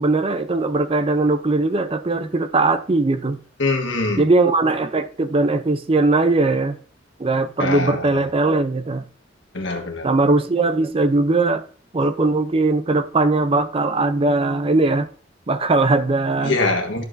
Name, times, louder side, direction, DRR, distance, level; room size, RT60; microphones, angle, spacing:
voice 1, 0.0-3.4 4.2-6.8 7.2-9.1 10.0-11.6 11.9-15.1 15.5-16.6, right 2 dB, 30° right, 0.5 m, -19 dB
voice 2, 3.6-4.3 7.6-8.3 9.5-10.1 16.4-17.0, left 3 dB, 70° left, 1.6 m, -23 dB
12.0 x 6.7 x 2.6 m
head